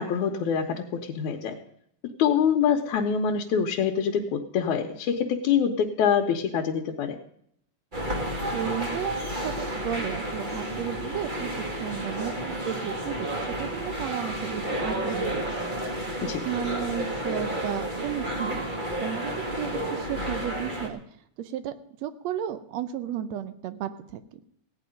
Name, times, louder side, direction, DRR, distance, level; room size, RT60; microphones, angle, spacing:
voice 1, 0.0-1.5 2.2-7.2 16.2-16.4, left 7 dB, 90° left, 1 dB, 2.4 m, -25 dB
sound 1, 7.9-20.9, right 1 dB, 25° right, 1.1 m, -31 dB
voice 2, 8.5-9.1 9.4-15.8 16.4-18.7 19.0-21.0 21.4-21.7 22.0-24.4, right 10 dB, 70° right, 13 dB, 1.9 m, -34 dB
16.5 x 9.7 x 5.2 m, 0.69 s
omnidirectional pair, 3.3 m